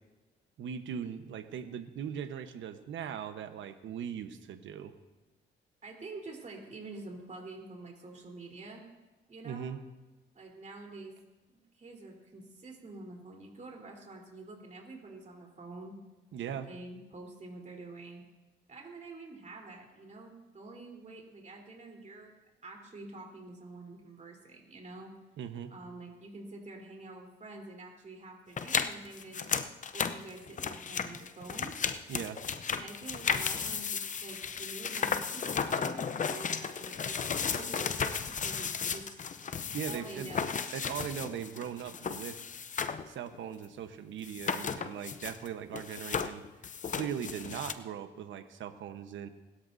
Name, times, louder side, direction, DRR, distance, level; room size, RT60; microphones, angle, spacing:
voice 1, 0.6-4.9 9.4-9.8 16.3-16.7 25.4-25.7 32.1-32.4 39.7-40.3 40.7-42.4 43.1-46.4 46.9-49.3, right 8 dB, 75° right, 8 dB, 1.1 m, -39 dB
voice 2, 5.8-8.9 9.3-9.7 10.3-11.2 11.5-15.9 16.4-18.2 18.7-22.3 22.6-25.1 25.7-29.5 29.9-31.7 32.8-39.2 39.9-40.6, right 2 dB, 35° right, 0 dB, 3.8 m, -47 dB
sound 1, 28.6-43.1 43.3-43.4 44.2-45.5 45.7-47.7, left 6 dB, 40° left, 0.7 m, -34 dB
20.5 x 13.0 x 2.7 m, 1.2 s
cardioid pair, 90°, 20 cm